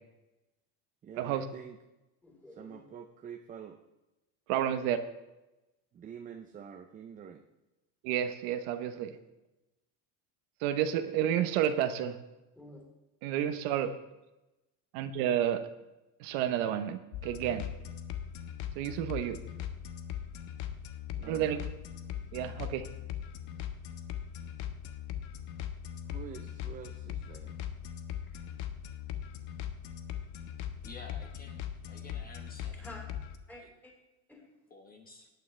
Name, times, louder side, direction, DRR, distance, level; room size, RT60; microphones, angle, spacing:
voice 1, 1.0-1.8 2.5-3.8 5.9-7.4 21.1-21.6 26.1-27.5, right 8 dB, 20° right, 6 dB, 0.5 m, -47 dB
voice 2, 2.2-2.8 12.5-12.8 28.3-28.4 32.7-33.1 33.5-33.9 34.3-34.5, left 1 dB, 5° left, 0 dB, 3.5 m, -50 dB
voice 3, 4.5-5.0 8.0-9.2 10.6-12.2 13.2-14.0 14.9-15.6 16.2-17.7 18.7-19.4 21.2-21.6 22.3-22.9, right 10 dB, 70° right, 9 dB, 1.0 m, -30 dB
sound 1, 17.1-33.4, left 10 dB, 75° left, 1.1 m, -40 dB
voice 4, 30.8-31.6 31.9-32.8 34.7-35.3, left 3 dB, 20° left, 3 dB, 1.2 m, -51 dB
18.0 x 9.2 x 3.3 m, 1.0 s
cardioid pair, 150°, 41 cm